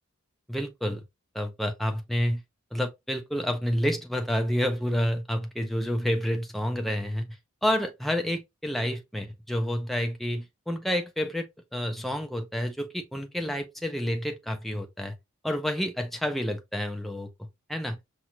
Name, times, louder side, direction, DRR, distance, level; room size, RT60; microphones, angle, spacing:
voice 1, 0.5-1.0 1.3-2.4 2.7-7.3 7.6-15.1 15.4-18.0, equal, ahead, 0.6 m, -29 dB
5.7 x 2.5 x 2.9 m
head